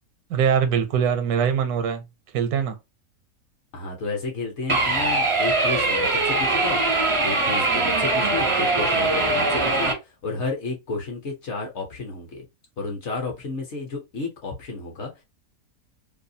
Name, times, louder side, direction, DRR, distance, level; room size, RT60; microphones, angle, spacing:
voice 1, 0.3-2.0 2.3-2.8, right 7 dB, 80° right, 1.1 m, -22 dB
voice 2, 3.7-6.8 7.2-12.5 12.8-15.1, left 3 dB, 55° left, 0.8 m, -32 dB
sound 1, 4.7-9.9, right 2 dB, 45° right, 0.3 m, -22 dB
2.7 x 2.2 x 2.6 m
omnidirectional pair, 1.6 m